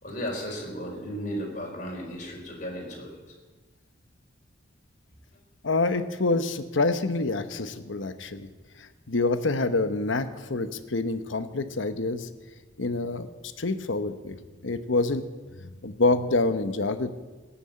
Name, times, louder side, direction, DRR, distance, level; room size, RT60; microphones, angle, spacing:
voice 1, 0.0-3.1, equal, 45° left, -1 dB, 4.4 m, -34 dB
voice 2, 5.6-8.5 8.8-12.3 12.8-13.3 13.6-14.4 14.6-15.2 15.6-17.1, left 3 dB, 85° left, 10 dB, 1.0 m, -27 dB
18.5 x 7.1 x 8.7 m, 1.3 s
head